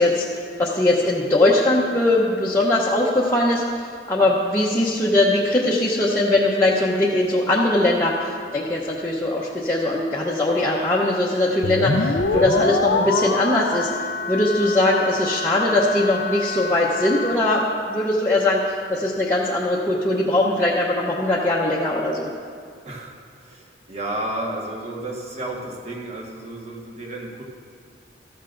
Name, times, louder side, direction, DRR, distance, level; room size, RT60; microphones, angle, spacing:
voice 1, 0.0-13.9 14.3-22.3, left 1 dB, 15° left, -6 dB, 0.8 m, -21 dB
sound 1, 11.6-17.4, left 4 dB, 60° left, 0.4 m, -25 dB
voice 2, 22.8-27.4, right 1 dB, 35° right, -1 dB, 1.4 m, -32 dB
14.0 x 12.5 x 2.6 m, 2.2 s
head